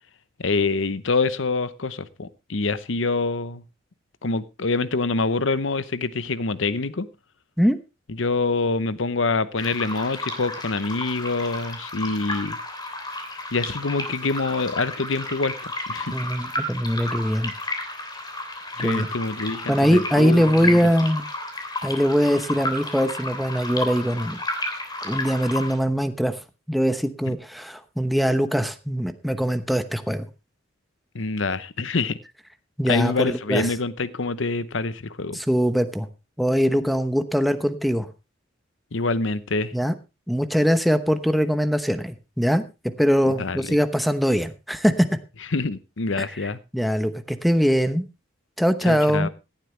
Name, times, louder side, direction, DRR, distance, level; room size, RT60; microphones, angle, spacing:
voice 1, 0.4-3.6 4.2-7.1 8.2-12.6 13.5-16.2 18.8-20.8 31.1-32.2 32.9-35.4 38.9-39.7 43.4-43.6 45.5-46.6 48.9-49.3, left 3 dB, 70° left, 0.9 m, -26 dB
sound 1, 9.6-25.8, left 2 dB, 20° left, 3.2 m, -32 dB
voice 2, 16.1-17.5 18.8-19.1 19.7-21.3 21.8-24.4 25.0-26.4 26.7-30.2 32.8-33.7 35.3-36.1 36.4-38.1 39.7-39.9 40.3-42.6 43.0-45.1 46.2-48.1 48.6-49.3, equal, ahead, 0.9 m, -22 dB
16.5 x 11.5 x 3.3 m
head